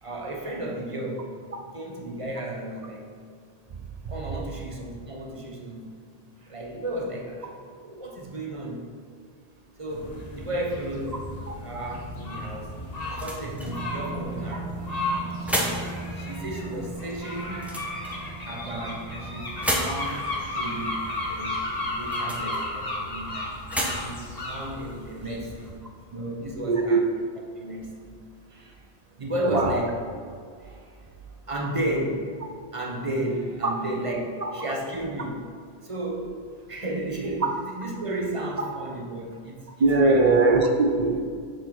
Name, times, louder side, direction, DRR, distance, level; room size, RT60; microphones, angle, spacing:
voice 1, 0.0-1.3 1.7-3.1 4.1-5.9 6.4-8.9 9.8-11.3 11.6-14.8 15.5-15.9 16.1-17.7 18.4-23.6 24.0-25.8 26.1-27.1 27.5-28.1 28.5-28.8 29.2-30.0 30.6-31.1 31.5-32.3 32.7-35.5 35.8-36.3 36.7-40.3, right 1 dB, 30° right, -1 dB, 1.0 m, -33 dB
sound 1, 9.9-25.7, left 2 dB, 40° left, 1.1 m, -34 dB
sound 2, 13.0-25.8, equal, ahead, 0.9 m, -36 dB
sound 3, 13.6-24.4 24.8-24.9, right 4 dB, 70° right, 1.7 m, -41 dB
voice 2, 26.7-27.0 29.5-29.8 33.6-33.7 34.4-34.5 39.8-41.2, right 3 dB, 45° right, 3 dB, 0.6 m, -20 dB
6.6 x 5.0 x 5.8 m, 2.1 s
omnidirectional pair, 1.1 m